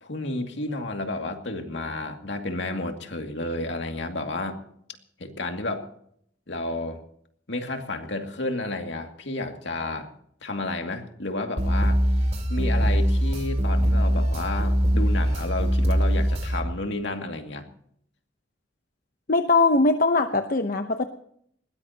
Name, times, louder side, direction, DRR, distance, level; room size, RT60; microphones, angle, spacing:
voice 1, 0.0-4.6 5.2-5.9 6.5-7.0 7.5-10.1 10.4-12.0 12.5-17.7, left 2 dB, 70° left, 4 dB, 2.4 m, -31 dB
sound 1, 11.6-16.6, equal, 35° right, 2.7 m, -22 dB
voice 2, 19.3-21.0, left 3 dB, 50° left, 7 dB, 0.9 m, -21 dB
21.0 x 19.0 x 2.9 m, 0.67 s
head